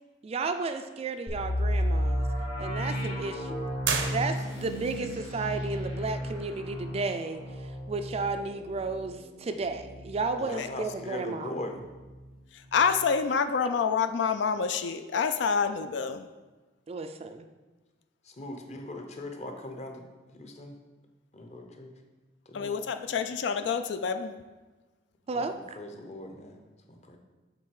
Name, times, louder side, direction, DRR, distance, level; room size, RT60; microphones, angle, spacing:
voice 1, 0.2-2.2 2.6-3.7 4.1-11.5 16.9-17.5 25.3-25.6, right 3 dB, 35° right, 8 dB, 0.3 m, -33 dB
sound 1, 1.3-11.0 11.3-11.4 11.9-12.2, equal, 85° left, 2.0 m, -33 dB
sound 2, 3.8-4.8, right 6 dB, 80° right, 0.7 m, -31 dB
voice 2, 10.4-11.8 18.2-20.8 21.3-21.9 22.5-22.8 25.3-27.2, left 1 dB, 35° left, 4 dB, 0.8 m, -40 dB
voice 3, 12.7-16.3 22.5-24.3, left 6 dB, 70° left, 8 dB, 0.4 m, -27 dB
7.5 x 4.0 x 4.7 m, 1.2 s
head